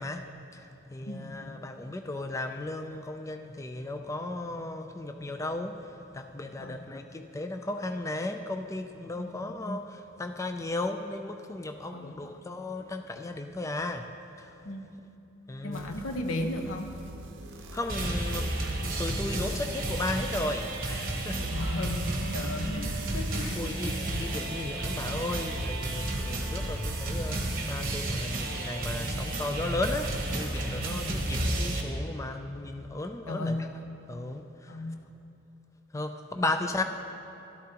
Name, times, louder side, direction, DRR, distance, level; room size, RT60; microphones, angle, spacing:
voice 1, 0.0-14.1 14.4-14.5 15.5-16.0 17.7-21.5 22.6-22.9 23.6-33.7 34.1-34.8 35.9-36.8, left 2 dB, 15° left, 6 dB, 0.3 m, -35 dB
voice 2, 1.1-1.4 6.6-6.8 9.2-9.5 11.9-12.2 14.6-14.9 15.6-17.0 21.5-23.7 24.1-24.3 30.9-31.2 33.3-33.7 34.7-35.0, left 1 dB, 85° left, 5 dB, 0.8 m, -35 dB
sound 1, 15.7-27.0, right 2 dB, 60° right, 0.7 m, -45 dB
sound 2, 17.9-31.8, right 1 dB, 40° right, 1.2 m, -32 dB
sound 3, 19.2-28.3, equal, 20° right, 1.3 m, -50 dB
13.0 x 12.5 x 2.9 m, 2.8 s
head